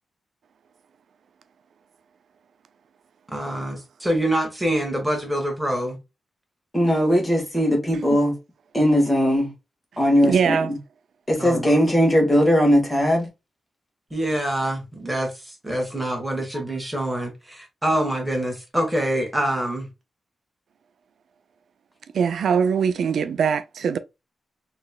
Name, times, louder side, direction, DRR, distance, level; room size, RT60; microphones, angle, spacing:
voice 1, 3.3-6.0 11.4-11.7 14.1-19.9, right 1 dB, 5° right, 1.4 m, -25 dB
voice 2, 6.7-8.3 8.7-9.5 10.0-10.8 11.3-13.3, equal, 15° left, 1.6 m, -19 dB
voice 3, 10.2-10.7 22.1-24.0, right 6 dB, 80° right, 0.3 m, -22 dB
3.9 x 3.1 x 2.2 m
wide cardioid pair, 135°, 0 cm